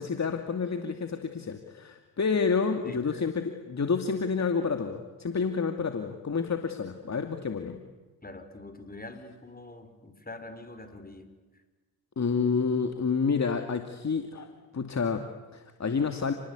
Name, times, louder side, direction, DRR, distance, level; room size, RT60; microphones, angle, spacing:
voice 1, 0.0-7.8 12.2-16.3, left 5 dB, 35° left, 6 dB, 2.5 m, -29 dB
voice 2, 2.8-3.2 8.2-11.3, left 2 dB, 20° left, 9 dB, 5.4 m, -45 dB
29.5 x 20.5 x 8.5 m, 1.3 s
supercardioid pair, 55°, 45 cm